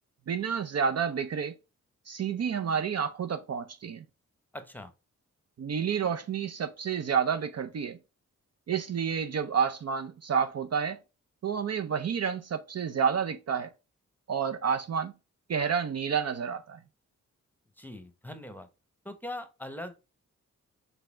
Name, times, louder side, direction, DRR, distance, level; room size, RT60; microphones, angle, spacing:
voice 1, 0.3-1.5 2.1-4.0 5.6-8.0 8.7-11.0 11.4-13.7 14.3-15.1 15.5-16.8, right 7 dB, 50° right, 0.5 m, -29 dB
voice 2, 4.5-4.9 17.8-18.7 19.0-19.9, left 1 dB, 5° left, 0.9 m, -41 dB
4.0 x 3.4 x 3.5 m
cardioid pair, 50°, 33 cm